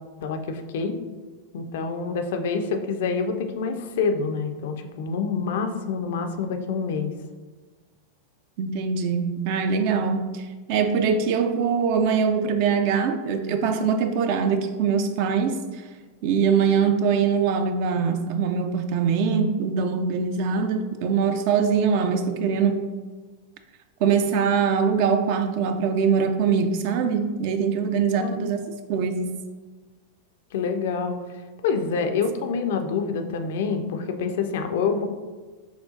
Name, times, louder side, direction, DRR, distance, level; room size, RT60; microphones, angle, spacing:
voice 1, 0.2-0.9 1.5-7.1 28.2-28.5 30.5-31.2 31.6-35.1, left 5 dB, 55° left, 6 dB, 0.4 m, -27 dB
voice 2, 8.6-15.8 16.2-22.8 24.0-28.6 28.9-29.3, right 6 dB, 45° right, 8 dB, 0.3 m, -23 dB
6.2 x 2.4 x 2.5 m, 1.3 s
figure-of-eight pair, 90°, 0 cm